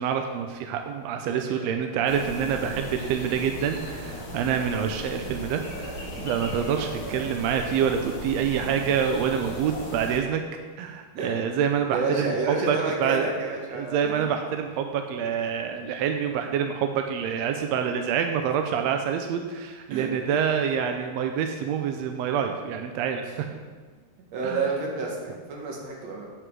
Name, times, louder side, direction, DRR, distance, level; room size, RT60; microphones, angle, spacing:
voice 1, 0.0-10.4 10.8-13.3 13.7-23.6 24.4-24.6, right 7 dB, 80° right, 5 dB, 1.6 m, -27 dB
voice 2, 1.2-1.7 6.7-7.2 11.1-11.4 11.9-14.2 19.9-20.1 24.3-26.3, right 3 dB, 60° right, -1 dB, 2.5 m, -30 dB
sound 1, 2.1-10.2, equal, 45° left, 2.2 m, -36 dB
7.9 x 7.8 x 4.8 m, 1.4 s
omnidirectional pair, 3.5 m